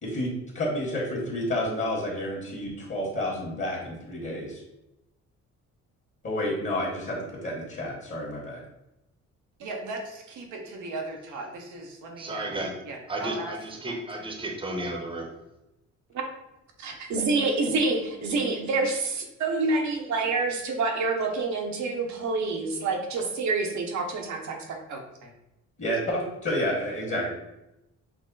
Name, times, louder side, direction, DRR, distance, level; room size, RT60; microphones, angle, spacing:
voice 1, 0.0-4.6 6.2-8.6 25.8-27.3, left 1 dB, 40° left, -4 dB, 1.5 m, -30 dB
voice 2, 9.6-12.6 12.8-13.5 13.8-14.0 24.9-25.3, right 2 dB, 85° right, 2 dB, 1.0 m, -38 dB
voice 3, 12.2-12.7 13.1-15.3, right 1 dB, 15° right, 1 dB, 0.9 m, -33 dB
voice 4, 16.8-24.8, right 3 dB, 70° right, 2 dB, 1.0 m, -27 dB
6.0 x 2.1 x 3.9 m, 0.90 s
cardioid pair, 90°, 30 cm